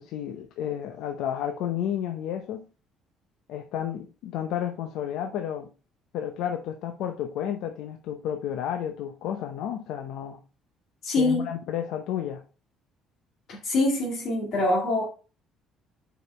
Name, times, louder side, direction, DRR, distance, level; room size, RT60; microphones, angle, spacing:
voice 1, 0.0-2.7 3.5-5.7 6.1-10.4 11.2-12.4, left 10 dB, 75° left, 0.7 m, -31 dB
voice 2, 11.0-11.5 13.5-15.1, left 2 dB, 55° left, 2.1 m, -24 dB
5.1 x 5.0 x 4.3 m
cardioid pair, 145°, 0 cm